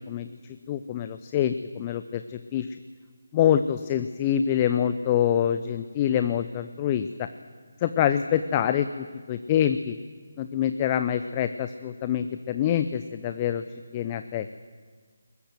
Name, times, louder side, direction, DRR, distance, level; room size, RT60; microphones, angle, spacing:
voice 1, 0.1-0.4 0.7-2.8 3.3-7.3 7.8-10.0 10.4-13.6 13.9-14.5, left 10 dB, 20° left, 10 dB, 0.7 m, -26 dB
21.5 x 21.5 x 7.9 m, 1.5 s
figure-of-eight pair, 155°, 0 cm